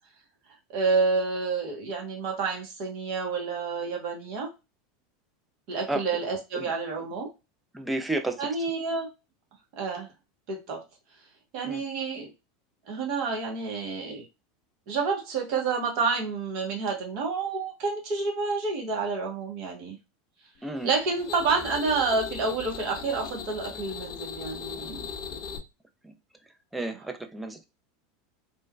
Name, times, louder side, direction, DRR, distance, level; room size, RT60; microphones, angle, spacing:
voice 1, 0.7-4.5 5.7-7.3 8.4-9.1 9.7-10.1 10.5-10.8 11.5-12.3 12.9-14.3 14.9-20.0 20.8-25.1, right 4 dB, 50° right, 0.9 m, -29 dB
voice 2, 7.7-8.5 11.6-11.8 20.6-20.9 26.0-26.1 26.7-27.7, right 2 dB, 10° right, 0.4 m, -31 dB
sound 1, 20.8-25.6, left 6 dB, 45° left, 0.5 m, -39 dB
3.0 x 2.2 x 2.2 m
hypercardioid pair, 85°, 0 cm